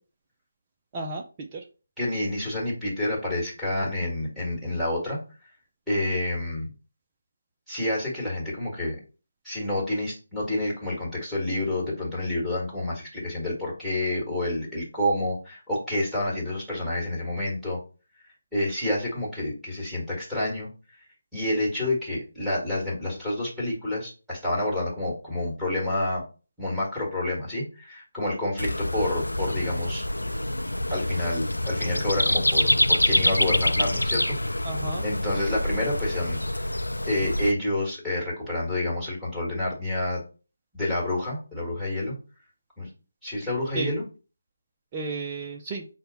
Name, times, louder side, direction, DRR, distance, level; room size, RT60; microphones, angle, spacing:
voice 1, 0.9-1.6 34.6-35.0 43.8-43.9 44.9-45.9, right 3 dB, 20° right, 0 dB, 0.5 m, -33 dB
voice 2, 2.0-5.2 5.9-6.7 7.7-9.0 9.4-17.8 18.5-20.7 21.3-26.2 26.6-30.0 30.9-34.4 35.0-36.4 37.1-40.2 40.7-42.1 42.8-42.9 43.2-44.0, left 1 dB, ahead, -9 dB, 1.7 m, -28 dB
sound 1, 28.6-37.5, left 1 dB, 80° left, 0.3 m, -26 dB
5.6 x 2.2 x 4.1 m, 0.34 s
figure-of-eight pair, 155°, 0 cm